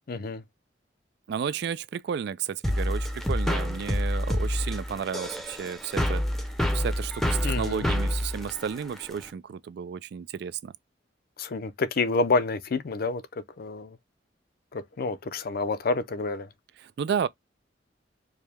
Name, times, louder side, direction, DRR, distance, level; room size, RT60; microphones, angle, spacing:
voice 1, 0.1-0.4 7.4-7.9 11.4-14.0 14.7-16.5, left 3 dB, 55° left, 0.5 m, -28 dB
voice 2, 1.3-6.2 6.7-10.7 16.8-17.3, right 7 dB, 65° right, 0.3 m, -32 dB
sound 1, 2.6-9.3, equal, ahead, 0.6 m, -28 dB
4.8 x 2.1 x 3.3 m
head